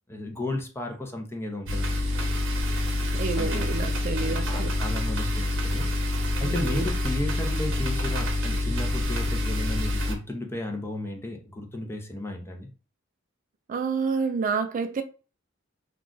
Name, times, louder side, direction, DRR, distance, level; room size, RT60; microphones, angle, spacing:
voice 1, 0.1-2.4 3.4-3.7 4.2-5.9 6.4-12.7, left 1 dB, 10° left, 0.5 m, -34 dB
sound 1, 1.7-10.1, left 1 dB, 70° right, 0.8 m, -27 dB
voice 2, 3.1-4.7 6.4-6.9 13.7-15.0, right 5 dB, 40° right, 0.3 m, -29 dB
2.4 x 2.3 x 3.7 m
head